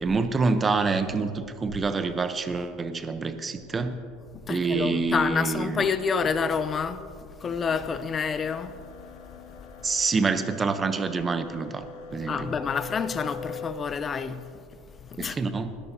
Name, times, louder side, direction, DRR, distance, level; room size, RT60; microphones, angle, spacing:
voice 1, 0.0-4.0 4.5-5.9 9.8-11.8 12.1-12.5 15.2-15.7, right 4 dB, 20° right, 0.8 m, -27 dB
voice 2, 4.5-7.0 7.4-8.7 12.3-14.4 15.2-15.4, left 6 dB, 25° left, 0.6 m, -28 dB
sound 1, 7.4-13.7, left 4 dB, 80° left, 2.7 m, -43 dB
20.0 x 13.0 x 2.8 m
supercardioid pair, 135°, 0 cm